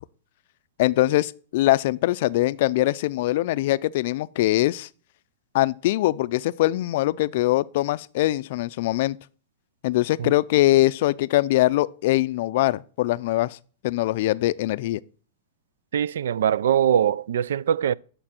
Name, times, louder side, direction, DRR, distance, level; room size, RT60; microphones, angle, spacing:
voice 1, 0.8-4.9 5.5-9.2 9.8-13.6 13.8-15.0, left 16 dB, 55° left, 0.4 m, -22 dB
voice 2, 15.9-17.9, right 9 dB, 85° right, 0.3 m, -22 dB
11.0 x 6.8 x 4.4 m
supercardioid pair, 155°, 0 cm